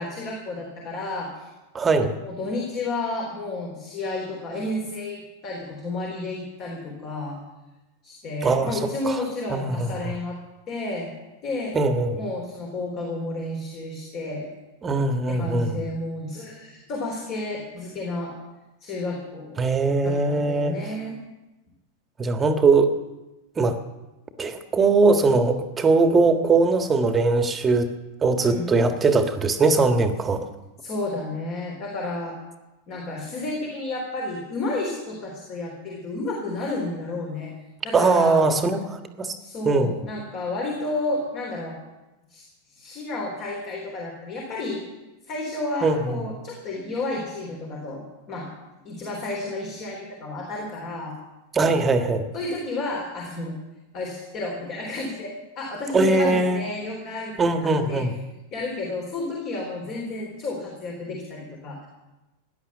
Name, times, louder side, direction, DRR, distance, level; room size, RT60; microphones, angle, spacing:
voice 1, 0.0-1.5 2.2-7.4 8.0-10.4 10.7-11.1 11.4-11.8 12.1-14.5 15.3-18.3 18.8-19.6 20.0-21.2 28.4-28.7 30.8-32.3 32.9-37.5 37.8-38.4 39.4-41.8 42.3-44.8 45.2-48.5 48.8-51.1 52.3-53.5 53.9-57.3 57.6-58.1 58.5-61.9, left 2 dB, 35° left, 0 dB, 3.5 m, -31 dB
voice 2, 1.7-2.1 8.4-8.8 9.1-9.2 9.5-10.1 11.7-12.2 14.8-15.8 19.6-20.8 22.2-22.9 23.6-23.8 24.4-27.9 28.2-30.4 37.9-39.3 39.6-39.9 45.8-46.2 51.5-52.2 55.9-56.6 57.4-58.1, right 3 dB, 20° right, 7 dB, 1.6 m, -21 dB
16.5 x 11.0 x 7.2 m, 1.1 s
figure-of-eight pair, 90°, 0 cm